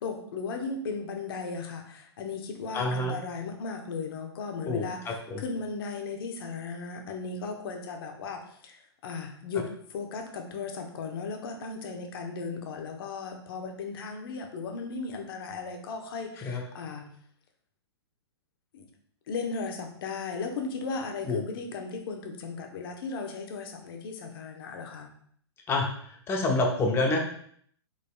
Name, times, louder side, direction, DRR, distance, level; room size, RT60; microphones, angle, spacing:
voice 1, 0.0-17.1 18.7-18.9 19.3-25.1, left 4 dB, 55° left, 3 dB, 1.0 m, -36 dB
voice 2, 2.7-3.2 4.7-5.4 16.4-16.6 21.2-21.4 25.7-27.2, left 2 dB, 15° left, 1 dB, 0.7 m, -28 dB
5.3 x 4.0 x 2.3 m, 0.63 s
hypercardioid pair, 140°, 14 cm